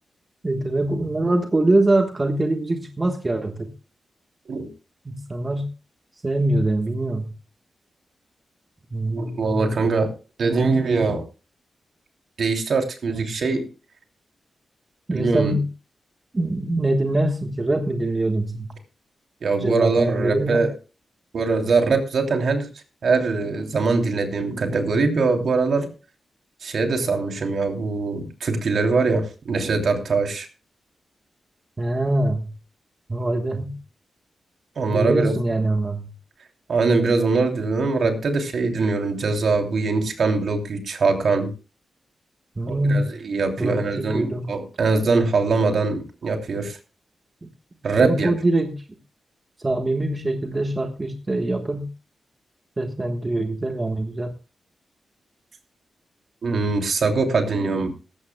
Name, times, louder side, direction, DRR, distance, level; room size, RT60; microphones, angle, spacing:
voice 1, 0.4-3.7 5.0-5.7 6.2-7.3 8.9-9.7 13.1-13.2 15.1-15.6 16.3-18.7 19.6-20.6 31.8-32.4 33.1-33.7 34.9-36.1 42.6-43.1 43.6-44.5 48.0-48.8 49.6-51.9 52.8-54.3, right 2 dB, 25° right, 4 dB, 1.3 m, -23 dB
voice 2, 9.1-10.1 10.4-11.2 12.4-13.7 15.1-15.6 19.4-20.7 21.3-22.7 23.0-25.9 26.6-30.5 34.8-35.3 36.7-41.5 42.7-46.8 47.8-48.3 56.4-57.9, right 4 dB, 60° right, 3 dB, 3.0 m, -22 dB
18.5 x 15.0 x 2.2 m, 0.33 s
wide cardioid pair, 135°, 0 cm